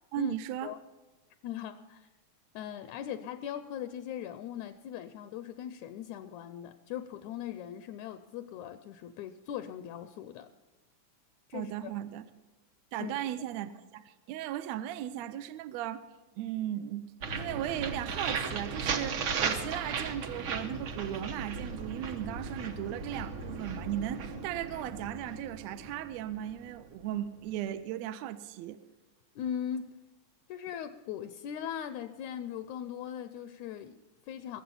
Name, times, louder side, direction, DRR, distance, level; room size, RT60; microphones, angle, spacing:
voice 1, 0.1-0.7 11.5-12.2 12.9-16.0 16.4-28.8, right 12 dB, 80° right, 11 dB, 1.7 m, -37 dB
voice 2, 1.4-2.1 2.6-10.5 11.5-11.9 13.0-13.1 29.4-30.0 30.5-34.6, left 9 dB, 80° left, 10 dB, 1.9 m, -39 dB
sound 1, 17.2-27.0, right 5 dB, 60° right, 1.5 m, -36 dB
21.0 x 7.5 x 5.5 m, 1.1 s
omnidirectional pair, 3.4 m